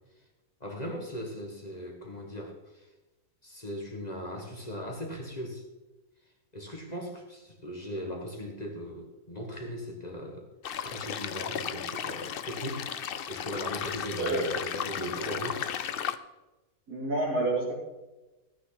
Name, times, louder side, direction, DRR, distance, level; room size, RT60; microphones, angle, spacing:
voice 1, 0.6-2.9 3.4-5.6 6.5-12.9 13.3-15.6, equal, 25° left, 0 dB, 1.8 m, -38 dB
sound 1, 10.6-16.2, left 9 dB, 70° left, 0.5 m, -35 dB
voice 2, 14.2-14.5 16.9-17.7, right 2 dB, 80° right, -5 dB, 4.3 m, -28 dB
14.5 x 9.6 x 4.1 m, 1.1 s
omnidirectional pair, 1.6 m